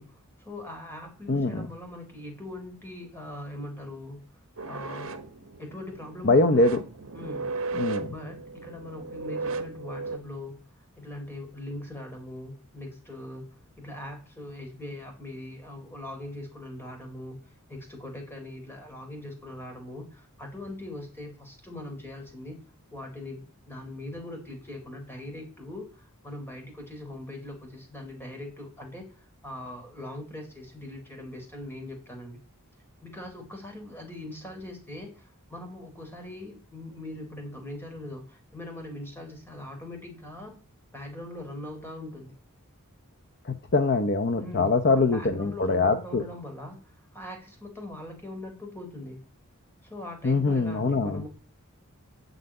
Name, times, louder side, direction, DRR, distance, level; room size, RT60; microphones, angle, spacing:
voice 1, 0.0-4.2 4.7-5.2 5.6-6.6 7.1-7.5 8.1-10.6 11.0-17.4 17.7-22.6 22.9-29.1 29.4-32.4 33.0-40.5 40.9-42.3 44.4-44.7 45.0-49.2 49.8-51.3, left 1 dB, 10° left, 3 dB, 4.0 m, -41 dB
voice 2, 1.3-1.7 6.2-6.8 7.8-8.1 43.4-46.2 50.2-51.2, left 3 dB, 50° left, 9 dB, 0.8 m, -23 dB
sound 1, 4.6-10.2, right 3 dB, 65° right, 1.3 m, -36 dB
8.1 x 8.0 x 8.9 m, 0.38 s
head